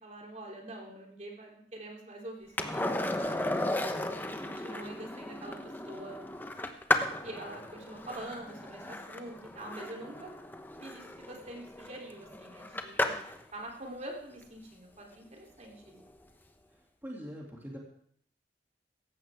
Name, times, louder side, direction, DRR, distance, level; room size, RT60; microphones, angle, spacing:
voice 1, 0.0-2.9 3.2-4.2 4.4-5.6 5.9-6.2 7.2-10.3 10.8-13.1 13.5-16.0, right 1 dB, 40° right, 0 dB, 3.3 m, -45 dB
Skateboard, 2.6-13.4 16.0-16.1, left 1 dB, 10° left, 0.9 m, -35 dB
voice 2, 17.0-17.8, equal, 10° right, -3 dB, 2.6 m, -42 dB
17.0 x 14.5 x 3.6 m, 0.64 s
head